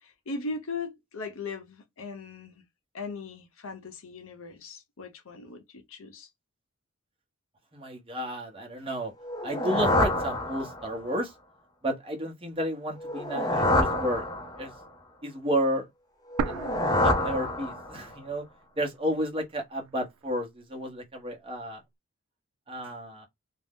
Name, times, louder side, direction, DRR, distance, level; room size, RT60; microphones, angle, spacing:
voice 1, 0.0-2.6 2.9-6.3, left 3 dB, 65° left, 0.7 m, -39 dB
voice 2, 7.7-9.1 9.4-11.3 11.8-14.2 14.6-14.7 15.2-15.9 16.5-16.6 17.0-18.4 18.8-21.8 22.7-23.3, equal, 25° right, 0.8 m, -31 dB
sound 1, 9.2-11.1 13.0-14.8 16.3-18.1, left 1 dB, 20° left, 0.5 m, -27 dB
sound 2, 16.4-18.3 18.6-18.7 19.4-20.4, right 5 dB, 85° right, 0.4 m, -36 dB
2.6 x 2.0 x 3.5 m
head